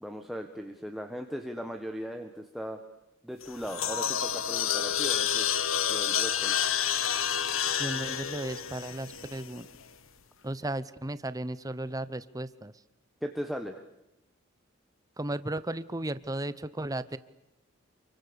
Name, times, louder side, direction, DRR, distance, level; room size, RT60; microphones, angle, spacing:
voice 1, 0.0-2.8 3.2-5.5 5.9-6.6 13.2-13.7, equal, ahead, 4 dB, 1.5 m, -38 dB
sound 1, 3.4-9.7, left 9 dB, 75° left, 1.2 m, -29 dB
voice 2, 7.8-9.7 10.4-12.7 15.2-17.2, right 1 dB, 15° right, 15 dB, 0.9 m, -35 dB
29.0 x 23.5 x 7.0 m, 0.86 s
head